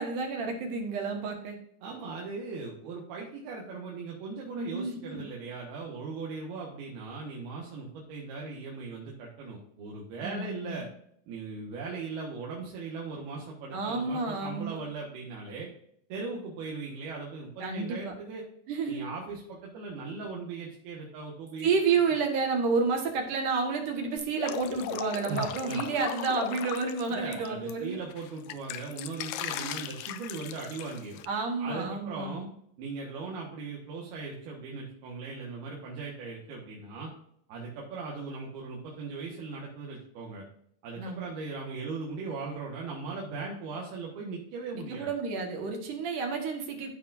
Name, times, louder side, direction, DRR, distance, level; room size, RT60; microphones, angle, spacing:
voice 1, 0.0-1.6 4.5-5.2 10.2-10.8 13.7-14.8 17.6-18.1 18.7-19.0 21.6-28.0 29.5-29.7 31.3-32.5 41.0-41.3 44.7-46.9, right 4 dB, 65° right, 2 dB, 2.8 m, -30 dB
voice 2, 1.8-10.9 11.3-15.7 16.1-18.4 18.9-21.7 25.3-25.8 27.1-31.2 31.6-32.4 32.8-37.1 37.5-40.4 40.8-45.1, right 4 dB, 85° right, -3 dB, 3.4 m, -39 dB
Drip, 24.2-27.7 28.1-31.3, left 11 dB, 80° left, 2.0 m, -38 dB
14.0 x 6.0 x 2.6 m, 0.70 s
omnidirectional pair, 4.3 m